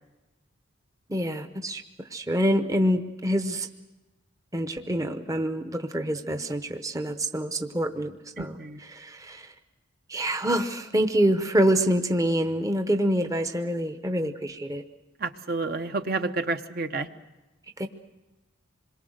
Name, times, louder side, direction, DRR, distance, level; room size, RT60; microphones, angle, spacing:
voice 1, 1.1-1.8 2.1-3.7 4.5-9.5 10.1-14.8 17.8-17.9, equal, 15° right, 7 dB, 0.9 m, -26 dB
voice 2, 8.4-8.8 15.2-17.1, right 3 dB, 45° right, 7 dB, 0.9 m, -30 dB
27.0 x 22.0 x 6.5 m, 1.1 s
head